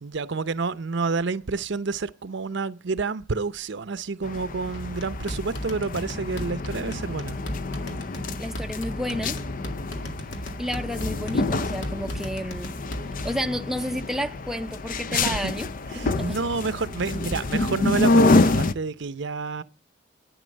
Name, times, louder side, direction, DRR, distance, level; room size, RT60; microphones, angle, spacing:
voice 1, 0.0-7.4 15.1-15.5 15.9-19.6, right 4 dB, 70° right, 0.7 m, -29 dB
sound 1, 4.2-18.7, left 2 dB, 45° left, 0.6 m, -27 dB
sound 2, 4.7-13.5, equal, 80° left, 2.0 m, -36 dB
voice 2, 8.4-9.4 10.6-12.7 13.2-15.7 16.0-16.4, equal, ahead, 0.6 m, -31 dB
11.0 x 9.4 x 6.4 m
head